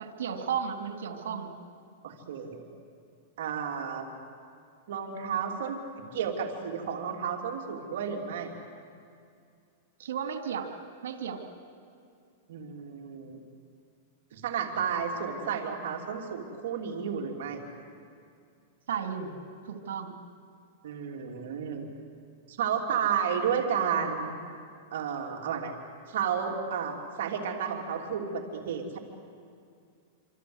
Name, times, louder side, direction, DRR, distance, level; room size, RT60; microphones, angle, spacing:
voice 1, 0.0-1.5 10.0-10.7 11.0-11.4 18.9-19.4 19.6-20.1, right 7 dB, 85° right, 5 dB, 3.0 m, -34 dB
voice 2, 2.0-2.6 3.4-4.1 4.9-5.8 6.1-8.5 12.5-13.4 14.3-17.6 20.8-21.9 22.5-24.3 24.9-25.7 26.1-29.0, right 7 dB, 70° right, 2 dB, 3.1 m, -32 dB
27.0 x 25.5 x 8.1 m, 2.3 s
supercardioid pair, 150°, 0 cm